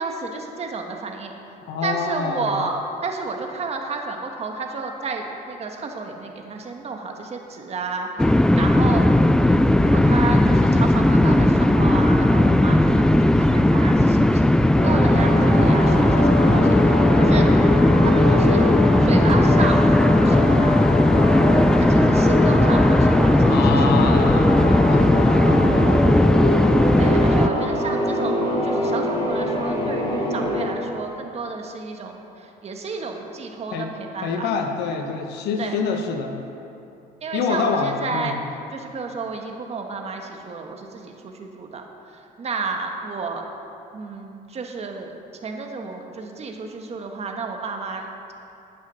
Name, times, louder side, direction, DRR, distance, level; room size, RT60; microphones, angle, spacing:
voice 1, 0.0-1.3 1.8-9.1 9.4-17.5 18.0-18.7 19.0-20.7 21.8-24.3 27.0-34.5 35.6-35.8 37.2-38.4 38.7-43.5 43.9-45.1 45.4-48.3, right 4 dB, 40° right, 3 dB, 1.5 m, -31 dB
voice 2, 1.7-2.6 10.1-10.5 16.4-16.7 21.1-21.4 23.5-25.1 25.4-26.3 33.7-33.9 34.2-36.3 37.3-38.4, left 5 dB, 85° left, 4 dB, 1.2 m, -27 dB
sound 1, 8.2-27.5, left 1 dB, 5° left, 0.3 m, -17 dB
sound 2, 14.8-30.7, left 1 dB, 35° left, 2.7 m, -24 dB
10.5 x 9.0 x 6.3 m, 2.7 s
cardioid pair, 110°, 17 cm